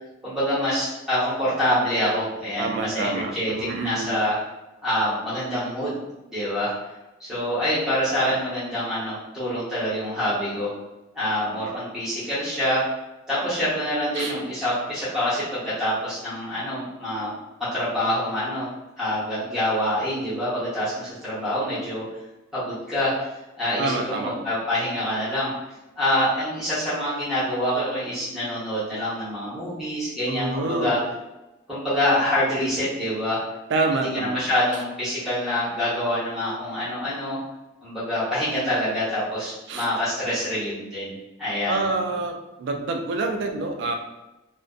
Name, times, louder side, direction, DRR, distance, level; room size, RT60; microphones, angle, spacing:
voice 1, 0.2-4.4 4.8-6.0 6.3-6.7 7.2-10.7 11.1-12.8 13.3-17.3 17.6-18.7 19.0-22.0 22.5-23.3 23.6-25.5 26.0-31.0 31.7-33.4 33.9-37.4 37.8-41.1 41.4-41.9, left 1 dB, 5° right, -11 dB, 0.8 m, -26 dB
voice 2, 2.6-4.1 14.2-14.3 23.8-24.4 30.3-30.9 33.7-34.4 39.7-39.9 41.7-44.0, right 3 dB, 60° right, 3 dB, 0.3 m, -27 dB
2.5 x 2.1 x 2.3 m, 1.0 s
head